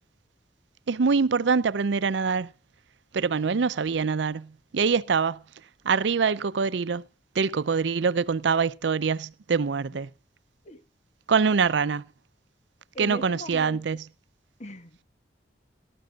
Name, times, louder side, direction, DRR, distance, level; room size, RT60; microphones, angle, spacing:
voice 1, 0.9-2.5 3.1-5.4 5.8-7.0 7.4-10.1 11.3-12.0 13.0-14.1, right 5 dB, 85° right, 0.5 m, -24 dB
voice 2, 12.9-13.8 14.6-15.0, equal, 40° left, 1.8 m, -39 dB
18.5 x 13.0 x 2.4 m
head